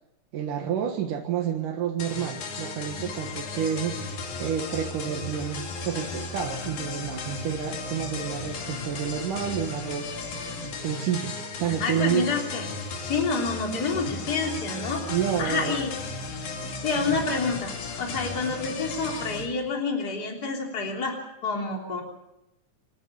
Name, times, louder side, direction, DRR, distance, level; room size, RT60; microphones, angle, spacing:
voice 1, 0.3-10.2 10.8-12.3 15.1-15.8 17.0-17.2, right 9 dB, 80° right, 2 dB, 3.1 m, -29 dB
sound 1, 2.0-19.5, left 3 dB, 70° left, 3.8 m, -35 dB
voice 2, 11.8-12.7 13.0-15.0 15.4-15.9 16.8-21.2 21.4-22.0, left 4 dB, 30° left, 0 dB, 3.6 m, -28 dB
28.0 x 11.0 x 8.6 m, 0.88 s
omnidirectional pair, 3.6 m